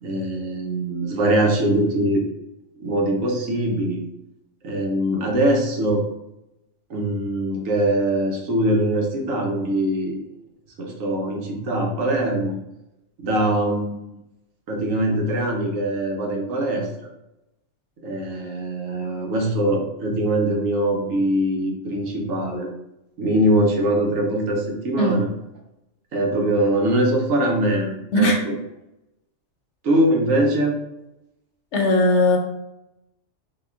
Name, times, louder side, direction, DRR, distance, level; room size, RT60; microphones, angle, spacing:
voice 1, 0.0-2.2 2.8-4.0 4.6-6.0 6.9-10.2 10.8-12.6 13.2-14.0 14.7-17.1 18.0-22.7 23.2-25.3 26.1-28.5 29.8-30.8, right 1 dB, 85° right, 1 dB, 1.2 m, -22 dB
voice 2, 31.7-32.4, left 1 dB, 65° left, 1 dB, 1.0 m, -18 dB
4.0 x 2.3 x 3.6 m, 0.89 s
omnidirectional pair, 1.3 m